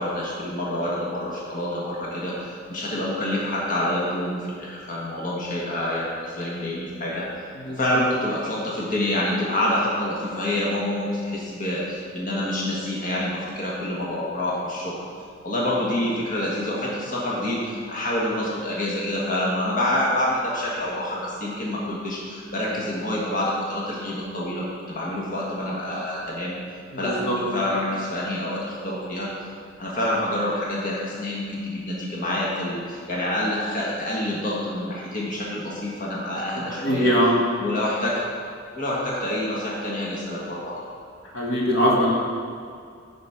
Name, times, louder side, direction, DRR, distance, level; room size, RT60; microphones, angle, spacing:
voice 1, 0.0-15.0 15.4-26.6 27.0-29.3 29.8-37.1 37.6-38.2 38.7-40.8, left 1 dB, 45° left, -5 dB, 1.5 m, -27 dB
voice 2, 27.0-27.4 36.6-37.3 41.3-42.2, equal, 85° left, -4 dB, 1.9 m, -21 dB
9.7 x 5.2 x 5.7 m, 2.2 s
head